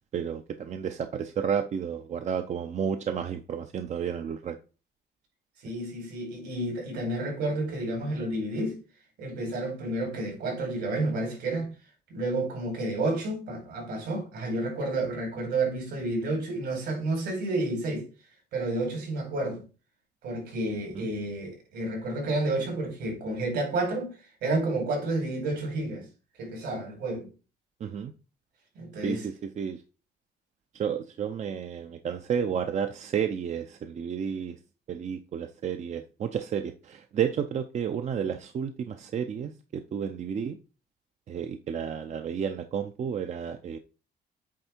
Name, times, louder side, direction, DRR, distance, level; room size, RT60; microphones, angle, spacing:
voice 1, 0.1-4.6 20.9-21.1 27.8-28.1 29.0-29.8 30.7-34.6 34.9-40.6 41.3-43.8, right 7 dB, 40° right, 0.6 m, -31 dB
voice 2, 5.6-8.8 9.2-11.7 12.1-18.0 18.5-19.6 20.2-24.1 24.4-26.1 26.4-27.3 28.7-29.2, right 2 dB, 75° right, 4.6 m, -30 dB
8.6 x 3.5 x 4.4 m
cardioid pair, 140°, 18 cm